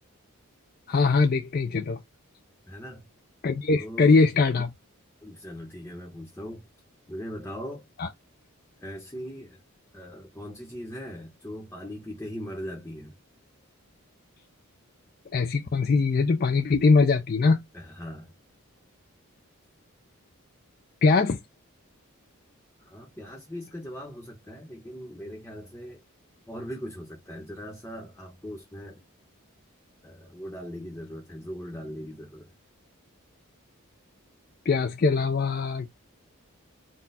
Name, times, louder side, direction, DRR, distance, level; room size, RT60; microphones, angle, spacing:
voice 1, 0.9-2.0 3.4-4.7 8.0-8.1 15.3-17.6 21.0-21.4 34.7-35.9, left 4 dB, 40° left, 0.4 m, -22 dB
voice 2, 2.7-3.1 3.8-4.3 5.2-6.7 7.1-7.9 8.8-9.6 9.9-13.2 17.7-18.3 22.8-26.0 26.5-29.0 30.0-32.5, equal, 10° left, 1.0 m, -40 dB
4.1 x 2.3 x 4.0 m
head